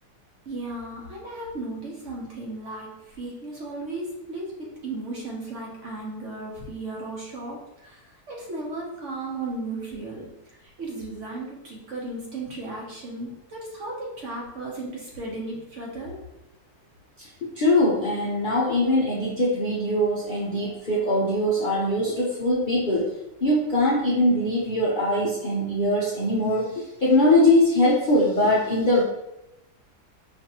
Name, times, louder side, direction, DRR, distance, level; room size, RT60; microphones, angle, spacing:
voice 1, 0.5-16.2, right 2 dB, 55° right, -3 dB, 0.9 m, -35 dB
voice 2, 17.4-23.1 23.4-29.0, left 1 dB, 60° left, -5 dB, 0.5 m, -22 dB
5.2 x 2.5 x 2.8 m, 0.90 s
omnidirectional pair, 1.8 m